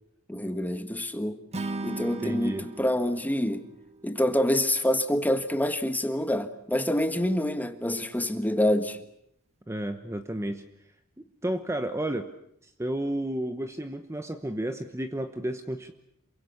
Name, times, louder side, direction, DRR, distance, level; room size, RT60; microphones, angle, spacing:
voice 1, 0.3-1.4 1.8-3.7 4.0-9.0, left 1 dB, 10° left, 9 dB, 1.4 m, -26 dB
Acoustic guitar / Strum, 1.5-4.8, right 2 dB, 30° right, 1.5 m, -38 dB
voice 2, 2.2-2.7 9.7-10.6 11.4-12.3 12.6-15.9, right 1 dB, 15° right, 8 dB, 1.0 m, -32 dB
27.5 x 23.5 x 7.1 m, 0.72 s
head